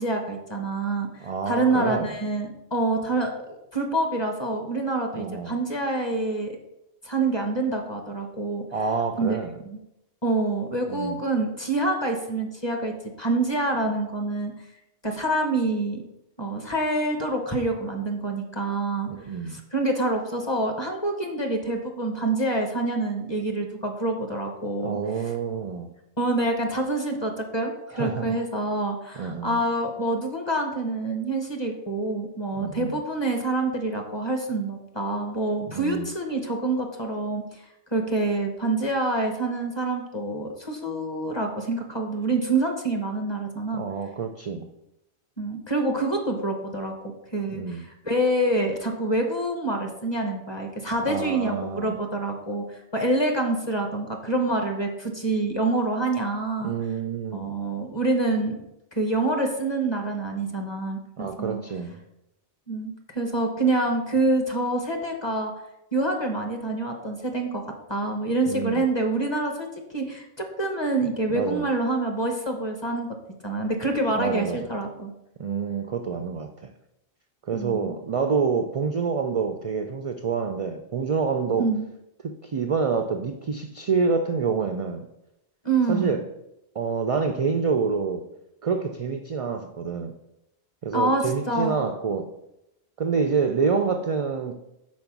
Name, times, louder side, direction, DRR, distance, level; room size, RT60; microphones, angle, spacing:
voice 1, 0.0-6.6 7.0-8.6 9.2-9.4 9.7-9.8 10.2-14.5 15.0-16.0 16.4-19.1 19.5-25.0 26.2-37.6 37.9-43.8 45.4-46.9 47.3-52.6 52.9-56.7 57.3-58.6 58.9-61.6 62.7-65.5 65.9-67.6 67.9-69.7 69.9-73.1 73.4-75.1 77.5-78.0 81.6-81.9 85.6-86.2 90.9-91.8, right 2 dB, 25° left, 3 dB, 0.9 m, -26 dB
voice 2, 1.2-2.1 5.1-5.6 8.7-9.6 10.9-11.2 19.1-19.6 24.8-25.9 27.9-28.3 29.2-29.6 32.6-33.0 35.7-36.1 43.7-44.7 47.5-47.9 51.1-52.0 56.6-57.6 61.2-62.0 68.5-68.8 71.3-71.7 74.1-74.6 75.4-76.7 77.5-81.7 82.2-85.0 85.9-86.2 86.8-88.3 88.6-90.1 90.8-92.3 93.0-94.5, right 5 dB, 60° right, 6 dB, 0.3 m, -27 dB
5.3 x 4.5 x 5.9 m, 0.88 s
omnidirectional pair, 1.1 m